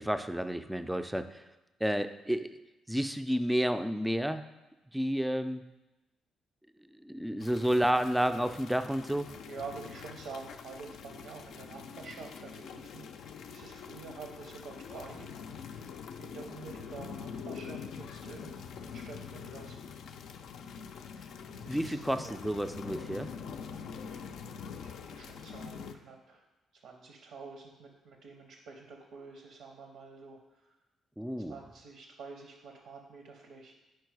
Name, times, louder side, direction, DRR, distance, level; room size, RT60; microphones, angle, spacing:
voice 1, 0.0-1.4 1.8-2.5 2.9-4.5 4.9-5.6 6.9-9.3 21.7-23.3 31.2-31.5, equal, 5° right, 9 dB, 0.3 m, -30 dB
sound 1, 7.4-25.9, left 6 dB, 75° left, 0.4 m, -45 dB
voice 2, 9.5-19.9 21.6-22.4 24.1-24.4 24.8-26.4 26.7-30.6 31.5-33.7, right 4 dB, 85° right, 2 dB, 0.6 m, -48 dB
4.6 x 4.6 x 4.7 m, 1.0 s
cardioid pair, 90°, 0 cm